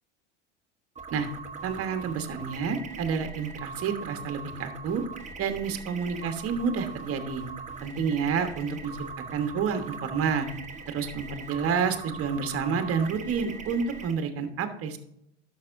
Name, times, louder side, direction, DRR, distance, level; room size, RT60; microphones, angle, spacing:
sound 1, 1.0-14.1, right 4 dB, 20° right, 1.2 m, -41 dB
voice 1, 1.6-5.0 5.4-7.4 7.8-9.0 9.3-10.5 10.9-15.0, right 6 dB, 40° right, 7 dB, 1.4 m, -29 dB
11.5 x 6.8 x 2.7 m, 0.78 s
hypercardioid pair, 95°, 35 cm